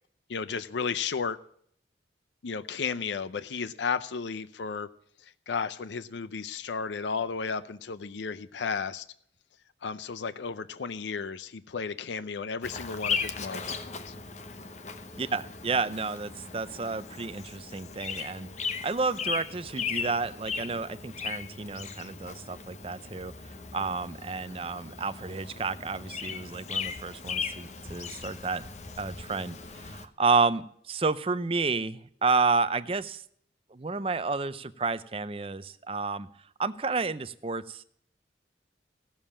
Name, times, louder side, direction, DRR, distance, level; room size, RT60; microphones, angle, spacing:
voice 1, 0.3-1.4 2.4-4.9 5.2-9.1 9.8-14.2, left 5 dB, 80° left, 0.5 m, -33 dB
Bird vocalization bird call bird song, 12.6-30.1, left 5 dB, 40° left, 0.9 m, -37 dB
voice 2, 15.2-28.6 29.0-33.2 33.7-36.3 36.6-37.8, right 4 dB, 30° right, 0.5 m, -31 dB
16.0 x 7.3 x 8.6 m
head